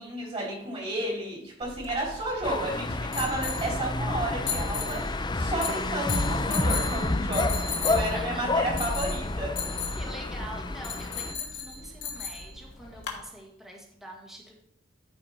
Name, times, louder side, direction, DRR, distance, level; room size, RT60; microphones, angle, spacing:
voice 1, 0.0-9.5, right 1 dB, 35° right, -4 dB, 4.0 m, -32 dB
sound 1, 1.6-13.2, left 5 dB, 65° left, 1.9 m, -37 dB
sound 2, 2.4-11.3, left 2 dB, 25° left, 0.5 m, -29 dB
voice 2, 8.0-8.5 9.9-14.6, right 1 dB, ahead, -2 dB, 1.7 m, -44 dB
13.5 x 5.1 x 4.4 m, 0.74 s
head